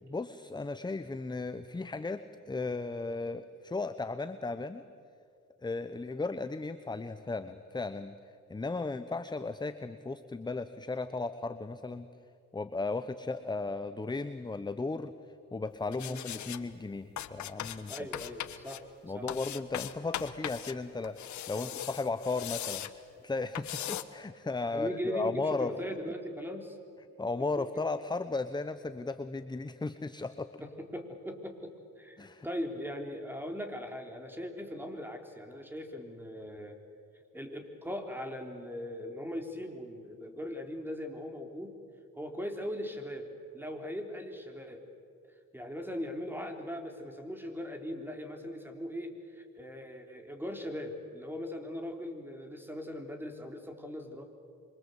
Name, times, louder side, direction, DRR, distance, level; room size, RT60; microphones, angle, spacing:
voice 1, 0.0-4.8 5.6-8.2 8.5-12.1 12.5-15.1 15.5-17.9 19.0-22.9 23.2-25.7 27.2-30.5 32.2-32.5, left 3 dB, 15° left, 11 dB, 0.9 m, -35 dB
sound 1, 15.9-16.6 17.2-18.8 19.3-20.7 21.0-22.9 23.6-24.0, left 11 dB, 70° left, 1.3 m, -39 dB
voice 2, 17.9-18.8 19.1-19.3 21.6-21.7 24.7-26.8 27.6-27.7 30.6-36.8 37.3-41.8 42.1-43.3 43.5-44.9 45.2-54.2, equal, 5° right, 5 dB, 3.8 m, -40 dB
26.5 x 25.0 x 8.2 m, 2.4 s
cardioid pair, 90°, 30 cm